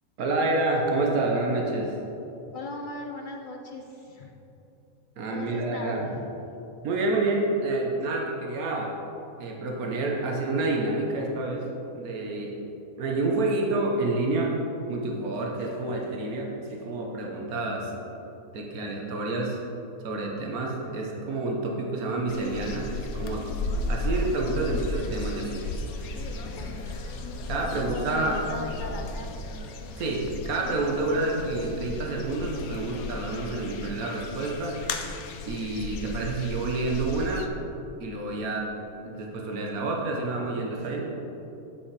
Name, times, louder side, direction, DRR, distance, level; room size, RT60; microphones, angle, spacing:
voice 1, 0.2-1.9 5.2-6.1 6.8-8.9 9.4-11.7 11.9-12.6 13.0-14.5 14.9-17.9 18.5-19.6 20.0-23.4 23.9-25.6 27.5-28.4 30.0-34.8 35.5-37.5 38.0-38.7 39.0-41.1, right 2 dB, 80° right, -1 dB, 1.5 m, -28 dB
voice 2, 2.5-4.3 5.3-6.5 26.5-27.1 27.6-29.4 29.8-29.9 30.9-31.2, left 3 dB, 65° left, 2 dB, 0.5 m, -39 dB
sound 1, 22.3-37.5, left 2 dB, 80° left, 1.2 m, -35 dB
sound 2, 24.5-30.1, equal, 20° left, 1.6 m, -46 dB
8.5 x 6.3 x 4.7 m, 3.0 s
omnidirectional pair, 1.5 m